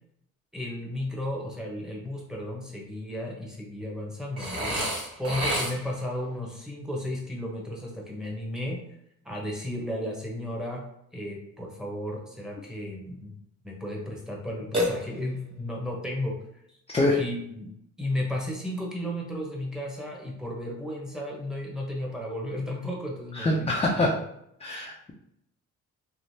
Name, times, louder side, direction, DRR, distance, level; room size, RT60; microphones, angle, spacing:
voice 1, 0.5-4.8 5.2-8.8 9.2-10.8 11.1-13.3 13.6-16.4 16.7-16.8 17.2-17.7 18.0-24.1, left 1 dB, ahead, -2 dB, 0.9 m, -34 dB
Burping eructation, 4.4-6.1 14.7-15.5, equal, 15° right, 1.4 m, -29 dB
voice 2, 23.4-24.2 24.6-25.1, left 2 dB, 20° left, -2 dB, 0.5 m, -24 dB
3.2 x 2.4 x 2.7 m, 0.74 s
cardioid pair, 90°, 30 cm